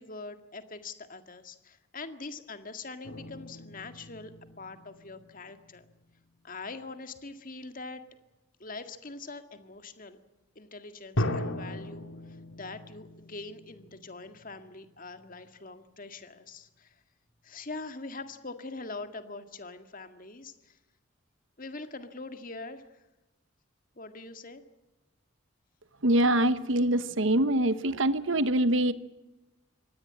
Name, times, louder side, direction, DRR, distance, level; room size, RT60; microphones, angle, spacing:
voice 1, 0.0-5.9 6.4-8.0 8.6-10.2 10.6-17.0 17.4-20.8 21.6-23.0 24.0-24.6, left 3 dB, 40° left, 8 dB, 2.0 m, -43 dB
sound 1, 3.0-6.0 6.6-6.9 11.2-15.5, left 1 dB, 90° left, 2.5 m, -38 dB
voice 2, 26.0-28.9, right 1 dB, 70° right, 13 dB, 1.1 m, -24 dB
25.0 x 18.5 x 8.7 m, 1.0 s
head